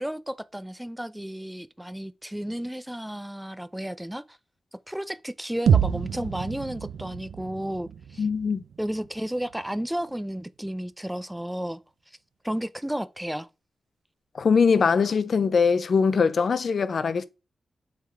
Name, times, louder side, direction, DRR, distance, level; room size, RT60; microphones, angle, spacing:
voice 1, 0.0-4.4 4.9-8.3 8.8-11.8 12.4-13.5, equal, 5° right, 0.4 m, -33 dB
sound 1, 5.7-9.6, right 7 dB, 90° right, 0.3 m, -27 dB
voice 2, 8.2-8.6 14.3-17.3, left 5 dB, 65° left, 0.5 m, -22 dB
7.2 x 3.7 x 3.5 m
cardioid pair, 60°, 0 cm